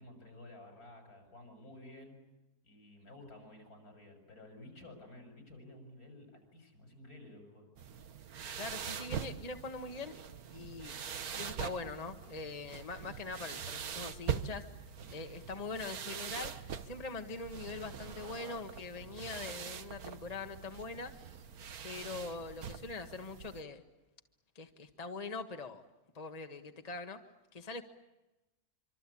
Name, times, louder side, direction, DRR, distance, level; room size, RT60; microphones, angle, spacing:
voice 1, 0.0-2.2 2.6-7.7, left 1 dB, 85° left, 5 dB, 7.3 m, -53 dB
sound 1, 7.8-23.6, right 7 dB, 80° right, 1.7 m, -43 dB
voice 2, 8.6-10.1 10.5-11.0 11.3-14.6 15.1-16.5 16.8-21.1 21.8-23.8 24.5-25.8 26.1-27.2 27.5-27.8, left 3 dB, 25° left, 6 dB, 1.5 m, -42 dB
26.0 x 25.5 x 8.6 m, 1.0 s
omnidirectional pair, 1.6 m